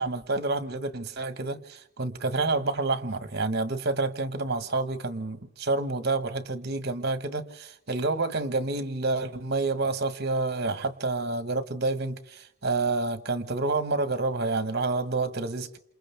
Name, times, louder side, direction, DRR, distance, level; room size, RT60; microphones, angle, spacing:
voice 1, 0.0-15.8, right 3 dB, 55° right, 1.4 m, -28 dB
28.5 x 27.5 x 3.5 m
head